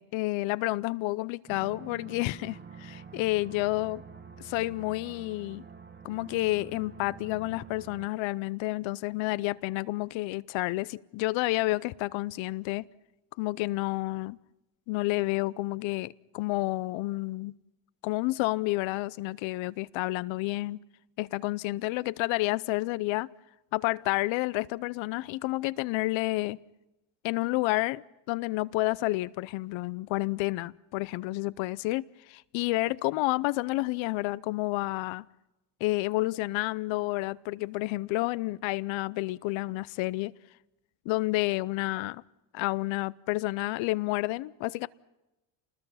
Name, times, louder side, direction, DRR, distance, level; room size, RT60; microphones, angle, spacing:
voice 1, 0.0-4.0 4.4-5.6 6.0-12.9 13.4-14.4 14.9-17.6 18.0-20.8 21.2-23.3 23.7-26.6 27.2-35.3 35.8-40.3 41.1-42.2 42.5-44.9, left 20 dB, 65° left, 0.7 m, -30 dB
sound 1, 1.5-8.1, right 6 dB, 20° right, 1.2 m, -47 dB
28.5 x 20.5 x 5.7 m
cardioid pair, 115°, 49 cm